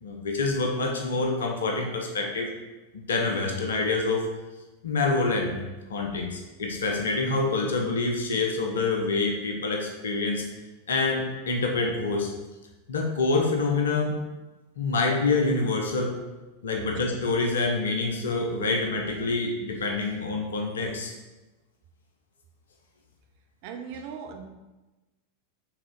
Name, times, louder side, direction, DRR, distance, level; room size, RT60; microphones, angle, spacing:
voice 1, 0.0-2.5 2.9-4.3 4.8-5.6 5.9-10.5 10.9-12.3 12.9-14.2 14.8-16.1 16.6-21.1, left 3 dB, 65° left, 1 dB, 0.8 m, -26 dB
voice 2, 23.6-24.5, right 6 dB, 45° right, 4 dB, 0.6 m, -38 dB
5.8 x 3.7 x 4.6 m, 1.1 s
figure-of-eight pair, 90°, 0 cm